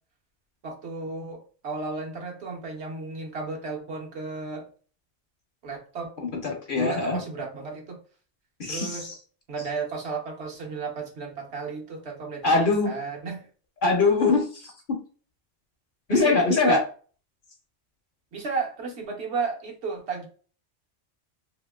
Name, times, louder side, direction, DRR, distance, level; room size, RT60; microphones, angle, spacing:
voice 1, 0.6-4.7 5.6-6.1 6.8-8.0 8.7-9.1 9.5-13.5 16.1-16.9 18.3-20.3, right 4 dB, 65° right, 0 dB, 1.2 m, -33 dB
voice 2, 6.2-7.2 8.6-9.1 12.4-13.0 13.8-14.5 14.9-15.0 16.1-16.8, left 3 dB, 55° left, 3 dB, 0.7 m, -22 dB
2.8 x 2.8 x 2.2 m, 0.38 s
omnidirectional pair, 1.2 m